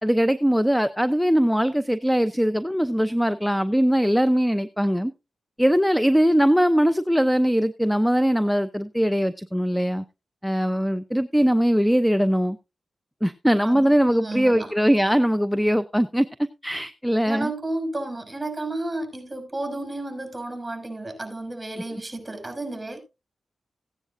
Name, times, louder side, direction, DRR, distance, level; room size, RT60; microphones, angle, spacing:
voice 1, 0.0-5.1 5.6-10.0 10.4-12.6 13.2-16.3 16.6-17.5, equal, ahead, 0.6 m, -21 dB
voice 2, 13.6-14.7 17.2-23.0, right 2 dB, 20° right, 6.0 m, -32 dB
16.0 x 9.8 x 2.6 m
cardioid pair, 55°, 0 cm